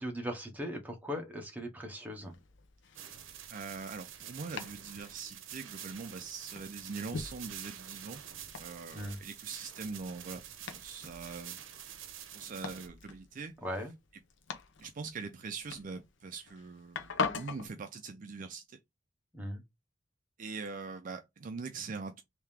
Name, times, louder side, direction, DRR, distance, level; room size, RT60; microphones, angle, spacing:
voice 1, 0.0-2.3 8.9-9.2 13.6-13.9 19.3-19.6, equal, 10° right, 1.0 m, -38 dB
Domestic sounds home sounds, 2.1-17.7, left 5 dB, 70° left, 0.7 m, -44 dB
sound 1, 2.9-12.9, right 9 dB, 90° right, 0.7 m, -47 dB
voice 2, 3.5-8.2 8.6-11.6 12.3-13.5 14.8-18.8 20.4-22.2, right 4 dB, 45° right, 0.4 m, -42 dB
3.4 x 2.7 x 3.4 m
head